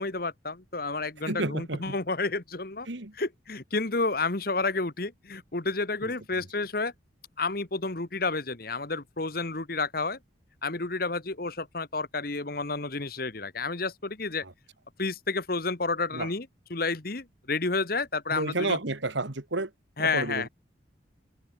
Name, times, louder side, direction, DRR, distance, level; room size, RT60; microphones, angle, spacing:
voice 1, 0.0-2.9 3.2-6.9 7.4-10.2 10.6-14.4 15.0-18.8 20.0-20.5, left 3 dB, 50° left, 1.5 m, -30 dB
voice 2, 1.3-2.0 2.9-3.1 6.0-6.1 14.4-14.5 16.1-16.3 18.3-19.7 20.0-20.5, right 2 dB, 75° right, 1.9 m, -31 dB
head